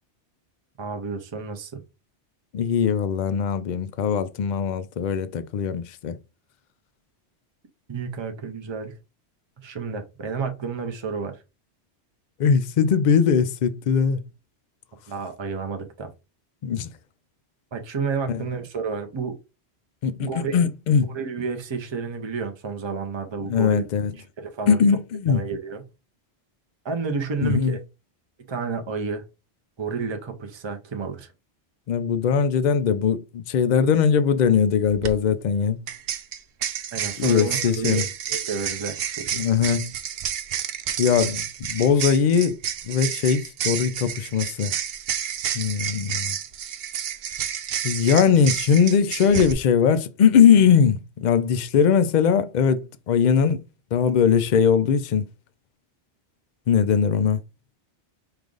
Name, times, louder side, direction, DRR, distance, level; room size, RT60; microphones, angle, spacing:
voice 1, 0.8-1.8 7.9-8.9 9.6-11.4 15.1-16.1 17.7-19.3 20.2-20.7 21.1-23.8 24.4-24.8 25.3-25.8 26.8-27.8 28.5-29.2 29.8-31.3 36.9-39.4, right 5 dB, 30° right, 0.6 m, -30 dB
voice 2, 2.5-6.2 12.4-14.2 16.6-16.9 18.3-18.4 20.0-21.1 23.5-24.1 24.7-25.4 27.4-27.8 31.9-35.8 37.2-38.0 39.4-39.9 41.0-42.6 42.9-44.7 45.5-46.4 47.8-53.6 53.9-55.2 56.7-57.4, left 7 dB, 60° left, 0.5 m, -20 dB
sound 1, 34.9-35.1 35.9-49.5, right 9 dB, 65° right, 0.7 m, -30 dB
4.9 x 2.4 x 3.8 m
omnidirectional pair, 1.2 m